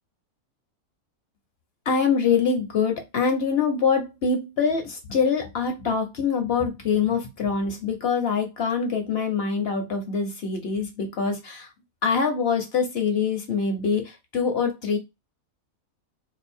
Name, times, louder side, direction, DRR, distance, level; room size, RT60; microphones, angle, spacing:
voice 1, 1.9-11.7 12.0-15.0, left 5 dB, 55° left, 4 dB, 0.9 m, -24 dB
2.7 x 2.5 x 4.2 m, 0.21 s
omnidirectional pair, 1.5 m